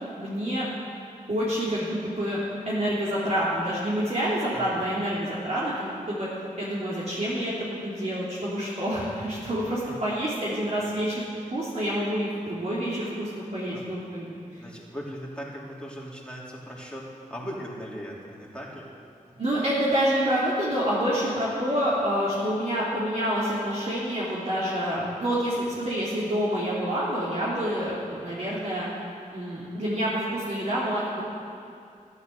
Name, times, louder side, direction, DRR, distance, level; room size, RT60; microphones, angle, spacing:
voice 1, 0.2-0.7 1.3-6.3 6.6-14.4 19.4-28.9 29.3-31.2, equal, 55° right, -8 dB, 3.3 m, -27 dB
voice 2, 4.5-4.8 9.8-10.0 10.7-10.9 13.7-13.8 14.6-17.0 17.3-18.9, equal, 5° left, -4 dB, 3.3 m, -39 dB
13.5 x 11.5 x 6.8 m, 2.4 s
wide cardioid pair, 70°, 14 cm